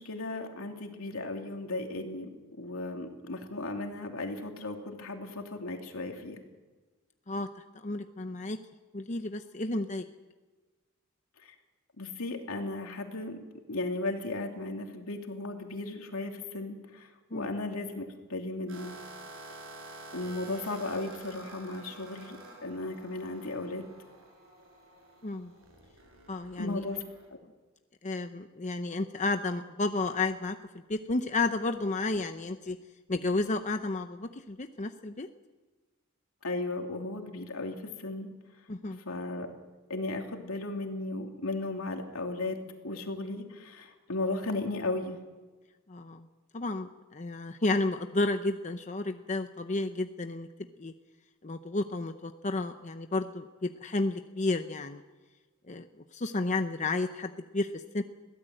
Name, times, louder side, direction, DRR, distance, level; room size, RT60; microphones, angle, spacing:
voice 1, 0.0-2.3 2.6-6.4 12.0-13.4 13.7-18.9 20.1-23.9 26.6-27.0 36.4-38.3 39.0-39.5 39.9-42.6 42.8-45.2, left 2 dB, 80° left, 3 dB, 3.0 m, -35 dB
voice 2, 7.8-8.6 8.9-10.1 17.3-17.5 25.2-25.5 26.3-26.8 28.0-30.6 30.9-32.8 33.1-35.3 38.7-39.0 45.9-46.3 46.5-50.5 50.8-50.9 51.4-55.0 55.7-55.9 56.1-58.0, left 2 dB, 35° left, 8 dB, 0.7 m, -32 dB
sound 1, 18.7-27.3, right 2 dB, 70° right, 7.7 m, -49 dB
22.5 x 16.5 x 7.8 m, 1.3 s
head